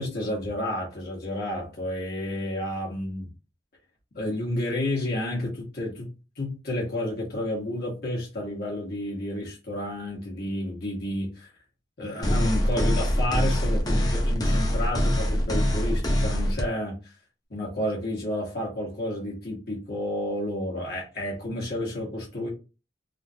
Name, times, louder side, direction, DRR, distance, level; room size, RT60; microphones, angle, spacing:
voice 1, 0.0-3.3 4.1-6.1 6.4-11.5 12.0-17.1 17.5-22.5, left 1 dB, 60° left, 1.3 m, -31 dB
sound 1, 12.2-16.6, equal, 20° left, 0.7 m, -24 dB
3.6 x 2.4 x 2.7 m
head